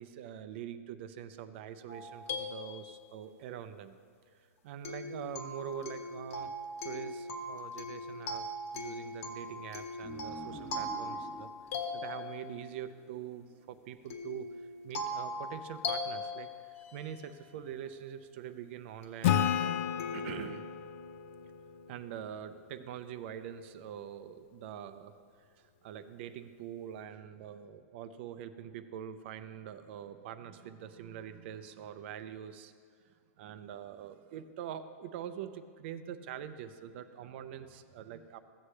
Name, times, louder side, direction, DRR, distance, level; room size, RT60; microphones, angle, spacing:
voice 1, 0.0-4.0 4.3-6.5 6.8-8.5 8.7-11.5 11.9-19.9 20.1-20.6 21.9-25.2 25.5-32.7 33.0-38.4, right 9 dB, 45° right, 11 dB, 0.5 m, -44 dB
sound 1, 1.9-3.4 4.8-12.7 14.1-17.4 19.0-19.1 20.0-20.5, left 2 dB, 65° left, 1.5 m, -40 dB
sound 2, 10.0-13.2, right 1 dB, 5° left, 1.2 m, -48 dB
Acoustic guitar / Strum, 19.2-22.7, left 9 dB, 50° left, 0.5 m, -32 dB
15.5 x 8.2 x 3.2 m, 2.2 s
supercardioid pair, 160°, 8 cm